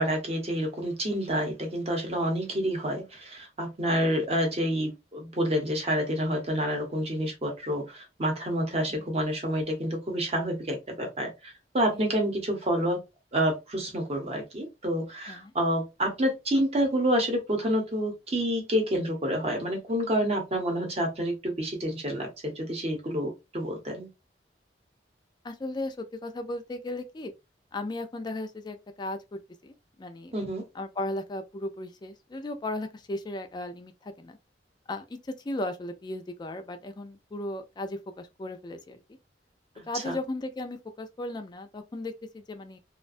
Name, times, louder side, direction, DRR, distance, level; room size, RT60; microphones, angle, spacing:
voice 1, 0.0-13.0 13.3-24.1 30.3-30.6 39.8-40.1, equal, 35° right, 0.8 m, -28 dB
voice 2, 25.4-27.3 27.7-30.4 30.7-34.4 34.9-39.0 39.9-42.8, left 2 dB, 25° left, 0.4 m, -36 dB
2.4 x 2.2 x 2.4 m
head